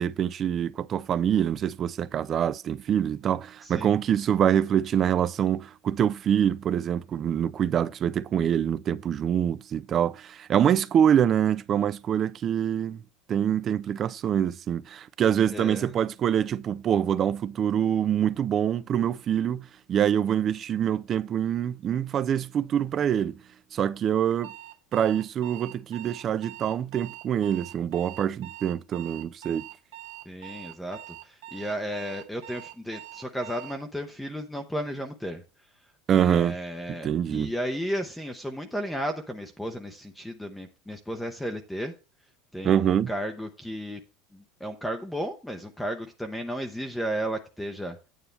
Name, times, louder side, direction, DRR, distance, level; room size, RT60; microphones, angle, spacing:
voice 1, 0.0-13.0 13.3-23.4 23.7-24.5 24.9-29.7 36.1-36.6 36.9-37.5 42.6-43.1, right 9 dB, 25° right, 0.3 m, -25 dB
voice 2, 15.5-15.9 30.3-35.4 36.2-41.9 42.5-44.0 44.3-48.0, equal, 5° left, 0.6 m, -34 dB
Alarm, 24.4-33.8, right 14 dB, 85° right, 1.0 m, -44 dB
9.2 x 8.3 x 3.2 m
cardioid pair, 170°, 0 cm